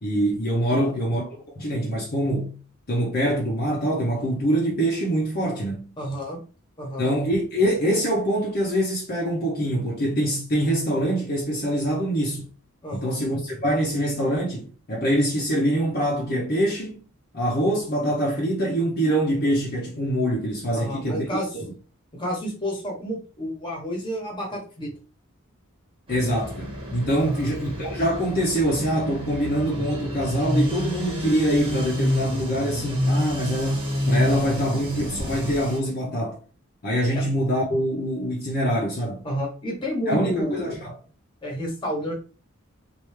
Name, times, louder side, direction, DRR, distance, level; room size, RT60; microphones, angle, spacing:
voice 1, 0.0-1.3 1.6-2.5 2.9-5.9 7.0-12.5 12.9-17.0 17.3-21.6 26.1-36.4 36.8-39.2 40.1-41.0, equal, 45° left, 0.8 m, -24 dB
voice 2, 0.7-1.0 6.0-6.4 6.8-7.1 12.8-13.2 20.7-21.5 22.1-24.9 27.2-27.5 37.1-37.2 39.2-40.6 41.4-42.1, equal, 20° left, 1.1 m, -30 dB
sound 1, 26.1-35.8, equal, 25° right, 1.1 m, -28 dB
3.3 x 2.6 x 3.1 m
head